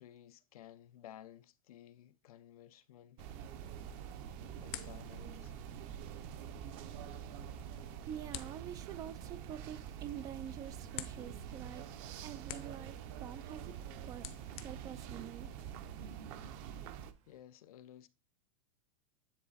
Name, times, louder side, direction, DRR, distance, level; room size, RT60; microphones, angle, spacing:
voice 1, 0.0-3.3 4.6-5.5 17.3-18.1, left 11 dB, 80° left, 0.8 m, -55 dB
sound 1, 3.2-17.1, right 9 dB, 40° right, 0.9 m, -46 dB
sound 2, 3.8-16.0, left 13 dB, 30° left, 0.7 m, -53 dB
voice 2, 8.0-11.9 12.2-13.8 14.0-14.3 14.6-15.5, right 10 dB, 20° right, 0.4 m, -47 dB
sound 3, 9.0-17.4, right 6 dB, 85° right, 4.1 m, -69 dB
10.0 x 3.9 x 4.1 m
supercardioid pair, 165°, 18 cm